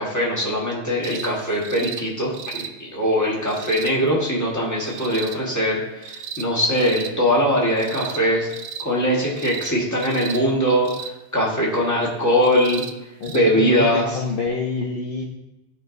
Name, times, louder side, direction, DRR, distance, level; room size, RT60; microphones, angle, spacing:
voice 1, 0.0-8.5 8.8-12.8 13.3-14.2, equal, 15° left, -4 dB, 1.6 m, -21 dB
sound 1, 1.0-1.3 1.6-2.0 2.3-2.7 3.5-3.9 4.9-5.4 6.0-6.5 6.7-7.1 7.8-8.2 8.5-8.9 9.4-9.7 10.0-10.4 10.8-11.1 12.4-12.9 13.2-13.4 14.5-14.6, right 7 dB, 70° right, 0.8 m, -34 dB
voice 2, 13.2-15.2, left 4 dB, 55° left, -1 dB, 0.9 m, -27 dB
12.0 x 5.1 x 2.6 m, 0.99 s
omnidirectional pair, 1.1 m